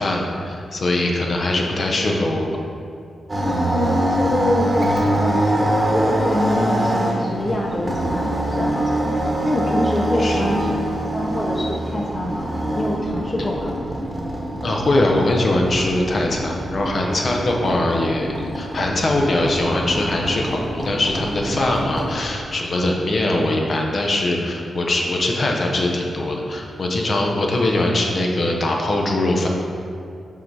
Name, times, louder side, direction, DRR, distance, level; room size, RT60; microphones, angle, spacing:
voice 1, 0.0-2.6 10.2-10.5 14.6-29.5, left 1 dB, 50° left, 0 dB, 0.8 m, -21 dB
sound 1, 3.3-22.2, right 1 dB, 25° right, 1.1 m, -24 dB
voice 2, 3.5-9.0 9.4-10.8 11.1-13.8, left 1 dB, 20° left, -1 dB, 0.6 m, -25 dB
5.7 x 4.1 x 4.6 m, 2.4 s
cardioid pair, 90°, 0 cm